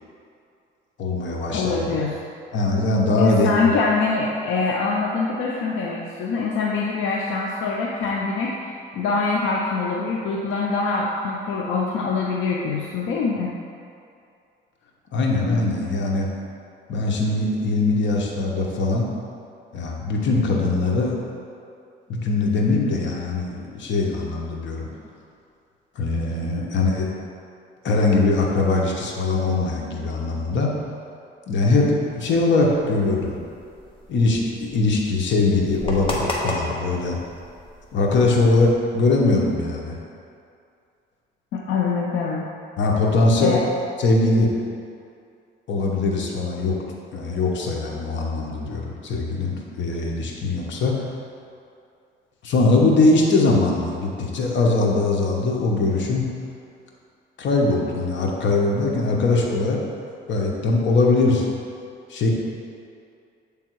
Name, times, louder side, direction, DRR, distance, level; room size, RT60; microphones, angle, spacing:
voice 1, 1.0-1.8 2.5-3.7 15.1-16.3 16.9-19.1 19.7-21.2 22.1-24.9 25.9-27.1 27.8-30.7 31.5-33.4 34.1-37.2 37.9-40.0 42.8-43.5 44.0-44.5 45.7-46.8 47.1-51.1 52.4-56.2 57.4-59.8 60.3-61.5 62.1-62.3, left 3 dB, 70° left, -1 dB, 1.1 m, -21 dB
voice 2, 1.5-2.1 3.2-13.5 41.7-42.5 43.4-43.6, left 4 dB, 85° left, -2 dB, 0.6 m, -24 dB
sound 1, 32.7-38.7, left 1 dB, 25° left, 1.1 m, -34 dB
7.6 x 3.5 x 4.6 m, 2.5 s
cardioid pair, 90°, 20 cm